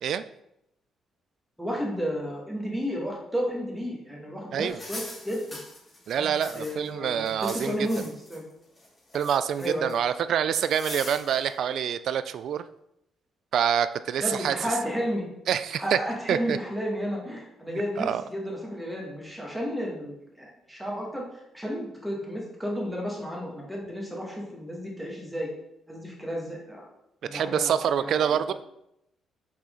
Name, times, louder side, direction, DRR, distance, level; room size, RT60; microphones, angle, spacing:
voice 1, 1.6-5.6 6.2-8.4 9.6-9.9 14.2-15.3 15.7-21.2 21.5-25.5 25.9-26.8 27.2-28.5, equal, 5° right, -2 dB, 1.9 m, -32 dB
sound 1, 4.7-6.9 7.2-8.4 8.8-9.9 10.5-11.5, left 1 dB, 25° left, 2.1 m, -41 dB
voice 2, 6.1-7.8 9.1-12.7 13.5-14.7 15.5-16.0 16.3-16.6 17.7-18.2 27.3-28.5, right 8 dB, 70° right, 13 dB, 0.3 m, -26 dB
6.1 x 4.3 x 3.9 m, 0.81 s
cardioid pair, 90°, 0 cm